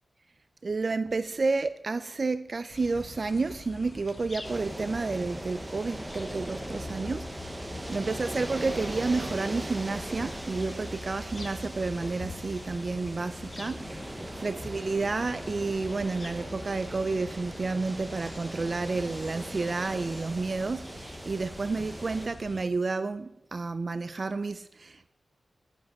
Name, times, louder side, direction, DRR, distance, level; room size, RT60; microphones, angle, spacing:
voice 1, 0.6-25.1, right 3 dB, 35° right, 0.4 m, -31 dB
sound 1, 2.7-22.7, left 2 dB, 30° left, 1.0 m, -44 dB
sound 2, 4.4-22.3, right 1 dB, 15° right, 1.0 m, -40 dB
10.5 x 10.5 x 6.0 m
wide cardioid pair, 170°, 0 cm